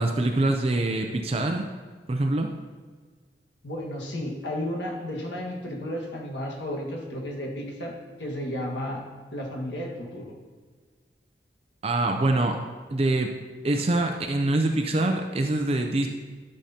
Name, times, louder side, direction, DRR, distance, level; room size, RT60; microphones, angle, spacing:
voice 1, 0.0-1.6 2.1-2.5 11.8-12.6 12.9-13.3 13.6-16.1, right 2 dB, 35° right, 4 dB, 0.5 m, -24 dB
voice 2, 3.6-9.1 9.3-10.2, left 1 dB, 85° left, -1 dB, 1.6 m, -33 dB
12.0 x 6.4 x 2.8 m, 1.5 s
head